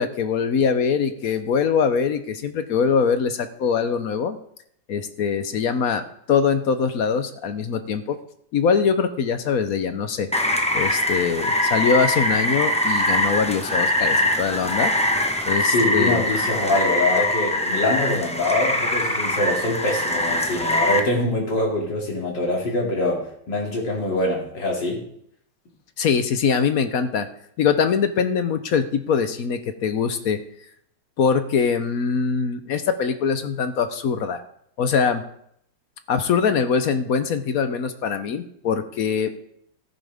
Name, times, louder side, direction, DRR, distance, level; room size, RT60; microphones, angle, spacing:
voice 1, 0.0-4.4 4.9-6.0 6.3-8.2 8.5-10.3 10.7-14.9 15.4-16.2 26.0-27.3 27.6-30.4 31.2-34.4 34.8-35.2 36.1-39.3, left 6 dB, 60° left, 9 dB, 1.1 m, -22 dB
Rain, 10.3-21.0, left 1 dB, 10° left, 0.4 m, -22 dB
voice 2, 15.6-25.0, left 2 dB, 80° left, -1 dB, 3.3 m, -24 dB
14.5 x 10.5 x 3.5 m, 0.70 s
omnidirectional pair, 1.9 m